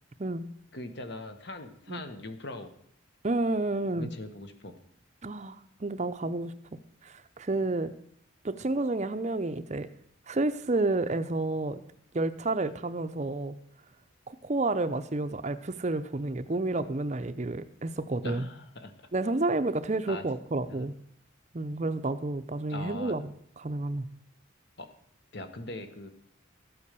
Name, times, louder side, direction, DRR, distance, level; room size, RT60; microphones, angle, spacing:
voice 1, 0.7-2.7 3.9-4.7 18.2-19.1 20.1-20.3 20.7-20.9 22.7-23.2 24.8-24.9 25.3-26.1, left 2 dB, 55° left, 8 dB, 1.5 m, -41 dB
voice 2, 3.2-4.1 5.2-6.5 7.0-7.9 8.4-9.9 10.3-11.8 12.1-13.5 14.3-18.4 19.1-20.9 21.5-24.1, right 2 dB, 35° right, 12 dB, 0.6 m, -30 dB
13.5 x 8.4 x 6.8 m, 0.67 s
head